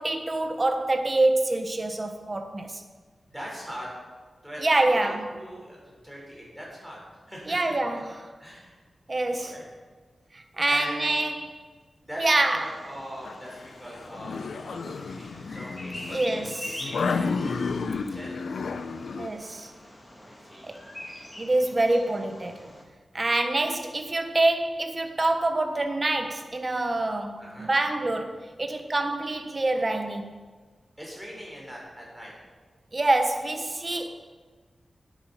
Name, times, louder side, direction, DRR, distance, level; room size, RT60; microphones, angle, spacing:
voice 1, 0.0-2.8 4.6-5.3 7.5-8.3 9.1-9.5 10.3-11.6 12.2-12.7 16.1-16.9 19.2-19.7 20.6-20.8 21.4-22.7 23.1-30.3 32.9-34.1, right 2 dB, 25° right, 1.3 m, -26 dB
voice 2, 3.3-3.9 4.4-5.0 5.3-7.6 7.9-8.1 8.4-8.7 9.3-9.7 10.6-11.2 12.0-18.4 20.2-20.7 27.4-27.7 31.0-32.3 33.9-34.1, equal, ahead, 4.6 m, -42 dB
Bird vocalization bird call bird song, 12.3-22.8, left 1 dB, 20° left, 2.1 m, -44 dB
sound 1, 13.2-19.3, left 4 dB, 80° left, 0.8 m, -32 dB
19.0 x 9.3 x 5.8 m
wide cardioid pair, 175°, 0 cm